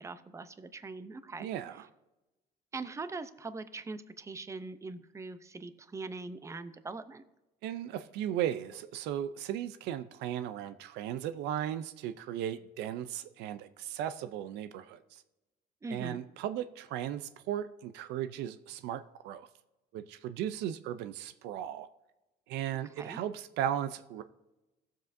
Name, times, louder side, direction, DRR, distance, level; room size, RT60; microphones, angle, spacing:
voice 1, 0.0-1.5 2.7-7.2 15.8-16.2 23.0-23.2, right 3 dB, 15° right, 12 dB, 0.6 m, -42 dB
voice 2, 1.4-1.8 7.6-15.2 15.9-19.5 19.9-21.9 22.5-24.2, right 11 dB, 90° right, 11 dB, 0.5 m, -36 dB
16.5 x 7.4 x 2.6 m, 1.0 s
cardioid pair, 110°, 17 cm